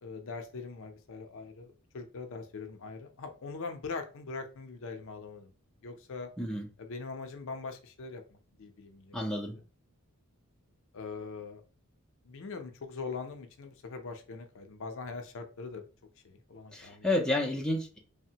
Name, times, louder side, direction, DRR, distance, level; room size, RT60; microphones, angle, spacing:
voice 1, 0.0-5.5 5.8-6.3 6.8-9.5 10.9-11.6 12.2-15.9 16.2-17.1, left 4 dB, 60° left, 6 dB, 0.5 m, -42 dB
voice 2, 9.1-9.6 16.7-18.0, left 1 dB, 5° left, 0 dB, 0.4 m, -30 dB
3.3 x 2.1 x 2.7 m, 0.35 s
head